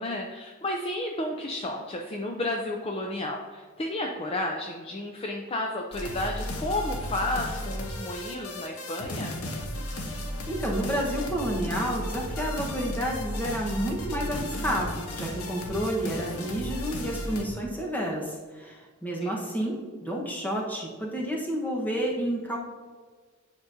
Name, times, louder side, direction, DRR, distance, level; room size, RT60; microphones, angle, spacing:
voice 1, 0.0-9.4 19.2-19.4, left 1 dB, 25° left, 1 dB, 0.5 m, -32 dB
sound 1, 5.9-17.4, left 1 dB, 80° left, 0.9 m, -34 dB
voice 2, 10.5-19.7 20.0-22.6, equal, 10° left, -2 dB, 1.1 m, -30 dB
9.6 x 5.2 x 2.6 m, 1.5 s
head